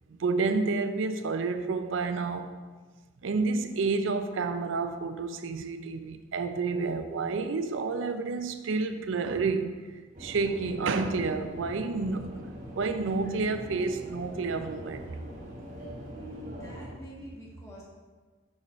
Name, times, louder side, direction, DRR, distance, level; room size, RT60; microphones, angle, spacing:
voice 1, 0.2-2.5 3.2-9.8 10.2-12.3 12.8-15.1, right 4 dB, 80° right, 8 dB, 0.5 m, -29 dB
sound 1, 10.1-16.9, equal, 40° right, 1.2 m, -43 dB
voice 2, 16.1-17.8, equal, 15° left, -6 dB, 1.5 m, -45 dB
6.4 x 5.9 x 3.1 m, 1.4 s
head